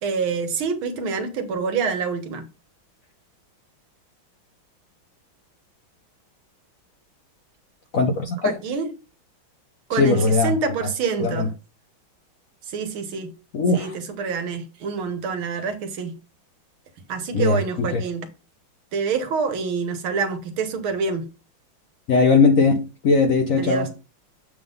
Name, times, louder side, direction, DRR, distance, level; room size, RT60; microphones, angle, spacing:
voice 1, 0.0-2.5 8.4-8.9 9.9-11.5 12.6-13.4 13.7-16.2 17.1-18.3 18.9-21.3 23.6-24.0, right 5 dB, 80° right, 2.0 m, -27 dB
voice 2, 7.9-8.5 10.0-10.5 11.2-11.5 13.5-13.9 17.3-18.0 22.1-23.9, left 4 dB, 60° left, 0.9 m, -19 dB
7.7 x 3.7 x 5.3 m
omnidirectional pair, 2.3 m